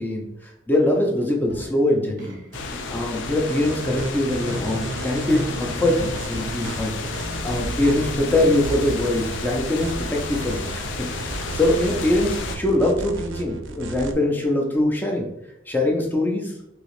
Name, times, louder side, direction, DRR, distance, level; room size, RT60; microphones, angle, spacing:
voice 1, 0.0-2.4 2.9-6.9 7.4-10.9 11.2-15.3 15.7-16.5, left 1 dB, 10° left, -1 dB, 0.5 m, -23 dB
sound 1, 1.5-12.5, right 1 dB, 45° right, 0.7 m, -40 dB
sound 2, 2.5-12.6, left 4 dB, 85° left, 0.4 m, -32 dB
sound 3, 3.5-14.1, right 3 dB, 85° right, 0.4 m, -34 dB
3.0 x 2.8 x 3.0 m, 0.81 s
head